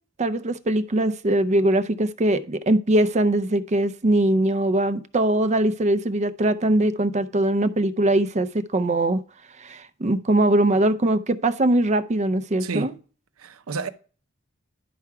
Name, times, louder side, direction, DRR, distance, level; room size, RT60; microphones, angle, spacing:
voice 1, 0.2-9.2 9.6-12.9, right 1 dB, 35° right, 0.5 m, -21 dB
voice 2, 12.6-13.0 13.4-13.9, right 4 dB, 85° right, 0.7 m, -30 dB
11.0 x 4.6 x 4.7 m
head